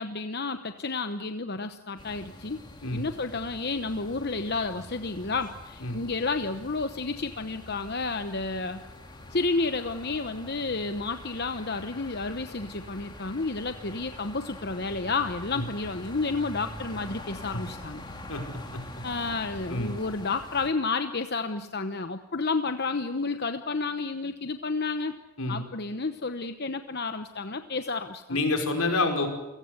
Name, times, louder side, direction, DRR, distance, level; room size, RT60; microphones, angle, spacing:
voice 1, 0.0-2.6 2.9-8.8 9.3-18.0 19.0-25.1 25.5-28.4, left 3 dB, 45° left, 8 dB, 1.0 m, -31 dB
sound 1, 2.0-20.7, left 1 dB, 20° left, 3.1 m, -45 dB
voice 2, 28.3-29.3, left 2 dB, 75° left, 4 dB, 5.3 m, -27 dB
29.5 x 17.5 x 8.1 m, 1.1 s
head